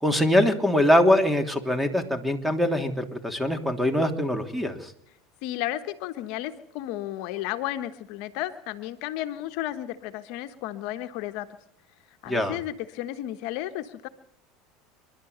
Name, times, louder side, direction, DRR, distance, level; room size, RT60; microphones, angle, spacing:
voice 1, 0.0-4.9 12.3-12.6, left 1 dB, 5° right, 7 dB, 3.0 m, -23 dB
voice 2, 5.4-11.5 12.2-14.1, left 13 dB, 65° left, 9 dB, 1.2 m, -33 dB
27.5 x 12.0 x 8.0 m, 0.73 s
hypercardioid pair, 85°, 0 cm